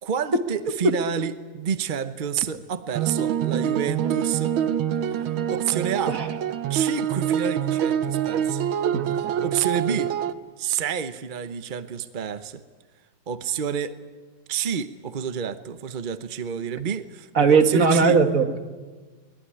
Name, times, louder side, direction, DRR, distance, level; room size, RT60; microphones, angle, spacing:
voice 1, 0.0-4.5 5.5-6.2 6.7-8.6 9.4-10.1 10.6-12.6 13.3-14.0 14.5-18.2, right 8 dB, 60° right, 11 dB, 0.5 m, -29 dB
sound 1, 3.0-10.3, right 9 dB, 80° right, 1.8 m, -25 dB
voice 2, 17.4-18.6, right 4 dB, 45° right, 6 dB, 2.0 m, -18 dB
22.0 x 21.5 x 9.9 m, 1.4 s
omnidirectional pair, 2.2 m